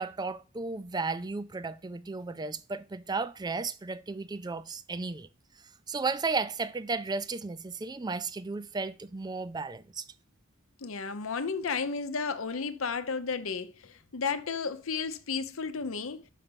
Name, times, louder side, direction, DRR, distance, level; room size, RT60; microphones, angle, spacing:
voice 1, 0.0-5.3 5.9-10.1, right 4 dB, 20° right, 0.4 m, -34 dB
voice 2, 10.8-16.2, left 5 dB, 85° left, 0.8 m, -33 dB
5.8 x 5.4 x 6.8 m
head